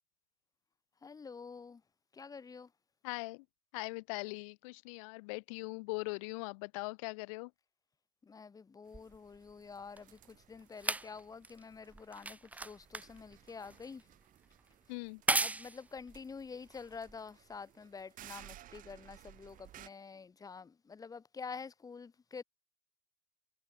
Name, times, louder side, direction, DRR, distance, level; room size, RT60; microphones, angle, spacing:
voice 1, 1.0-1.8 2.1-2.7 8.2-14.1 15.4-22.4, left 5 dB, 20° left, 2.2 m, -48 dB
voice 2, 3.0-3.4 3.7-7.5 14.9-15.2, left 29 dB, 60° left, 0.7 m, -41 dB
sound 1, 8.9-17.6 18.4-18.5, right 2 dB, 10° right, 0.8 m, -39 dB
sound 2, 8.9-19.9, right 14 dB, 45° right, 7.9 m, -59 dB
hypercardioid pair, 90°, 19 cm